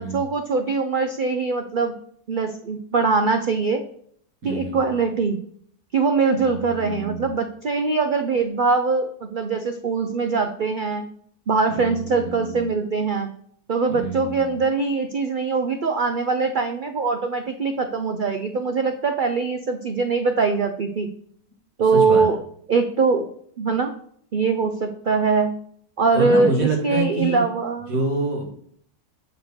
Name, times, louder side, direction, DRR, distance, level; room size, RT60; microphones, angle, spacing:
voice 1, 0.0-1.9 2.3-3.8 4.4-5.4 5.9-11.1 11.5-13.3 13.7-21.1 21.8-22.4 22.7-23.9 24.3-25.6 26.0-27.9, right 4 dB, 80° right, 7 dB, 0.4 m, -22 dB
voice 2, 4.4-4.8 6.3-7.3 11.8-12.7 13.9-14.5 21.9-22.2 26.1-27.4 27.9-28.5, right 2 dB, 60° right, -1 dB, 2.6 m, -27 dB
6.6 x 4.5 x 6.5 m, 0.63 s
omnidirectional pair, 1.6 m